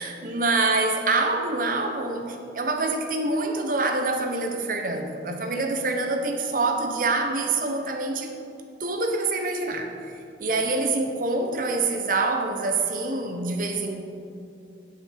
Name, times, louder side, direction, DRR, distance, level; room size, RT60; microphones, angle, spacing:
voice 1, 0.0-8.3 8.8-9.9 10.4-14.0, right 3 dB, 50° right, 4 dB, 0.9 m, -26 dB
10.5 x 5.9 x 5.9 m, 2.5 s
head